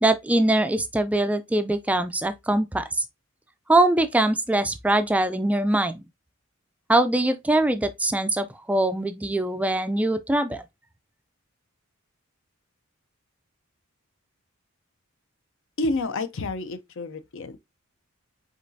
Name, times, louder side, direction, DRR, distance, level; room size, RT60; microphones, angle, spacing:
voice 1, 0.0-3.0 3.7-6.0 6.9-10.6, right 1 dB, 5° right, 0.3 m, -22 dB
voice 2, 15.8-17.6, left 2 dB, 65° left, 0.6 m, -29 dB
5.1 x 3.9 x 2.7 m
head